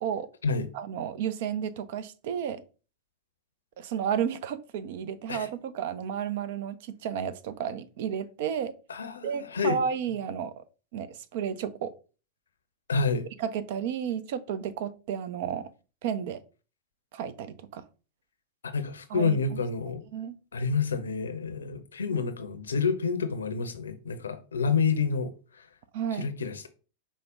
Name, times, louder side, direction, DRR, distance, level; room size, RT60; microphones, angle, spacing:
voice 1, 0.7-2.6 3.8-8.7 9.2-10.5 10.9-11.9 13.4-15.7 16.0-16.4 17.1-17.8 19.1-19.6 20.1-20.3 25.9-26.3, right 8 dB, 50° right, 0.4 m, -32 dB
voice 2, 8.9-9.8 12.9-13.3 18.6-20.0 20.5-25.7 26.1-26.7, left 5 dB, 70° left, 0.6 m, -29 dB
4.9 x 2.1 x 3.6 m
figure-of-eight pair, 90°, 0 cm